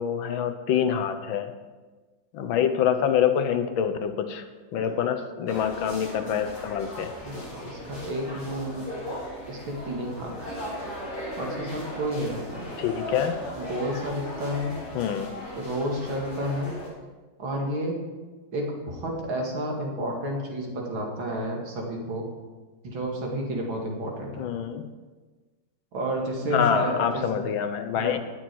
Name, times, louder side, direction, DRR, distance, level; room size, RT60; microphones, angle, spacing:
voice 1, 0.0-1.5 2.3-4.4 4.7-7.1 12.8-13.4 14.9-15.3 24.4-24.9 26.5-28.2, left 8 dB, 80° left, 9 dB, 1.6 m, -26 dB
sound 1, 5.5-16.9, equal, 35° left, 4.2 m, -38 dB
voice 2, 7.2-8.8 9.5-10.3 11.4-12.8 13.6-14.8 15.5-16.8 17.4-18.0 18.5-22.3 22.8-24.5 25.9-27.5 27.9-28.2, equal, 80° right, 0 dB, 2.8 m, -31 dB
18.5 x 6.2 x 4.6 m, 1.3 s
omnidirectional pair, 2.2 m